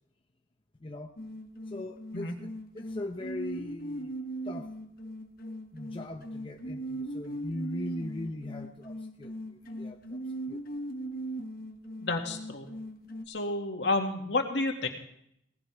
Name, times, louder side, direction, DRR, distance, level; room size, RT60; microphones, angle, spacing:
voice 1, 0.8-1.1 1.7-2.3 2.7-4.2 4.4-4.7 5.7-10.2 10.5-10.7, left 2 dB, 30° left, 3 dB, 0.8 m, -40 dB
sound 1, 1.2-13.3, right 1 dB, 50° left, 1.4 m, -39 dB
voice 2, 12.0-12.7 13.3-14.9, left 2 dB, 65° left, 2 dB, 2.3 m, -30 dB
18.5 x 16.0 x 3.5 m, 0.74 s
head